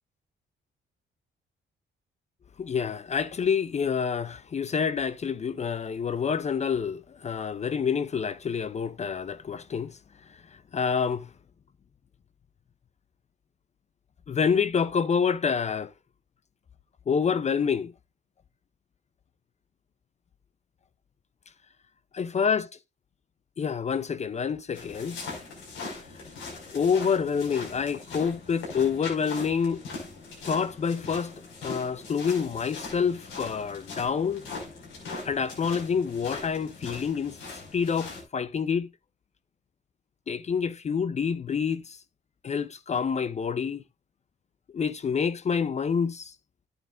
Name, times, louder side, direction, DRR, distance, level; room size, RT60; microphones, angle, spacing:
voice 1, 2.6-10.0 10.7-11.3 14.3-15.9 17.1-17.9 22.2-22.7 23.6-25.2 26.7-29.8 30.5-31.3 31.6-34.5 35.2-37.4 37.7-38.9 40.3-42.0 42.4-43.8 44.7-46.3, left 6 dB, 35° left, 0.5 m, -27 dB
sound 1, 24.7-38.2, left 3 dB, 85° left, 5.4 m, -41 dB
11.0 x 9.6 x 2.5 m
cardioid pair, 90°, 20 cm